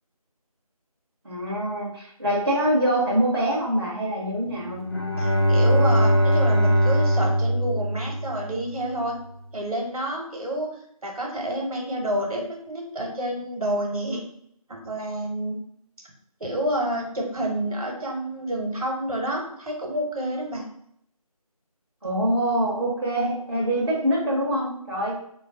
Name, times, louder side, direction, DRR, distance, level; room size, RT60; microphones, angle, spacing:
voice 1, 1.2-4.8 22.0-25.2, right 1 dB, 45° right, -5 dB, 0.7 m, -24 dB
Bowed string instrument, 4.7-8.8, equal, 45° left, 0.4 m, -21 dB
voice 2, 5.2-9.1 9.5-14.2 14.7-15.6 16.4-20.6, right 1 dB, 70° right, 0 dB, 0.9 m, -29 dB
2.3 x 2.0 x 3.5 m, 0.70 s
figure-of-eight pair, 170°, 19 cm